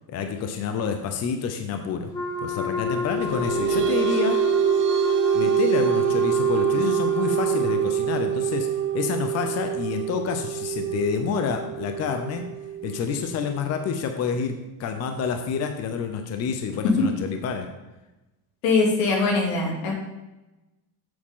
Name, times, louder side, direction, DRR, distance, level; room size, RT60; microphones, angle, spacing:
voice 1, 0.1-2.1 2.4-4.4 5.3-8.7 8.9-12.4 12.8-17.7, left 6 dB, 30° left, 6 dB, 0.7 m, -28 dB
Wind instrument woodwind instrument, 2.1-7.9, left 5 dB, 5° left, 0.7 m, -29 dB
sound 1, 3.0-14.0, right 10 dB, 25° right, 0.4 m, -25 dB
voice 2, 18.6-19.9, left 3 dB, 85° left, -1 dB, 2.9 m, -22 dB
8.1 x 7.8 x 3.8 m, 1.0 s
cardioid pair, 150°, 48 cm